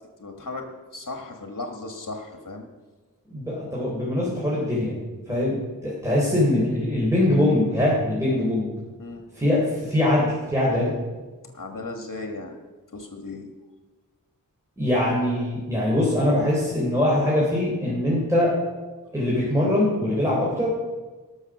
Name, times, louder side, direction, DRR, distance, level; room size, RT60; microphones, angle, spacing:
voice 1, 0.2-2.7 5.3-5.5 9.0-9.4 11.4-12.6 12.9-13.5, left 2 dB, 65° left, 4 dB, 1.5 m, -36 dB
voice 2, 3.3-4.9 5.3-5.6 5.8-8.7 9.4-10.9 14.8-18.5 19.1-20.7, left 1 dB, 10° right, -6 dB, 3.6 m, -22 dB
18.5 x 6.4 x 6.0 m, 1.3 s
wide cardioid pair, 50°, 34 cm